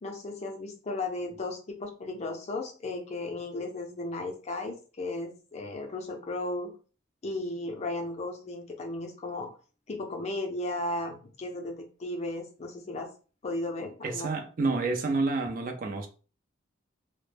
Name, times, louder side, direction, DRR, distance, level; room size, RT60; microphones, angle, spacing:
voice 1, 0.0-6.7 7.2-9.5 9.9-13.1 13.4-14.3, left 2 dB, 35° left, 0.4 m, -35 dB
voice 2, 14.0-16.1, right 3 dB, 40° right, 0.4 m, -29 dB
2.1 x 2.0 x 3.2 m
head